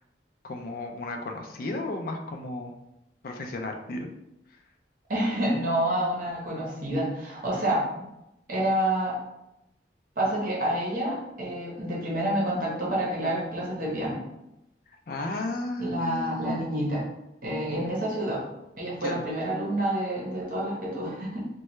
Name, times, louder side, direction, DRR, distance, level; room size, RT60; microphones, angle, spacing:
voice 1, 0.4-2.7 3.2-4.1 15.1-16.7 19.0-19.2, left 2 dB, 50° left, 3 dB, 0.4 m, -34 dB
voice 2, 5.1-8.0 8.5-9.2 10.2-14.2 15.8-17.0 17.4-18.4 18.8-21.4, right 1 dB, 50° right, -4 dB, 0.8 m, -28 dB
3.1 x 2.2 x 3.0 m, 0.86 s
head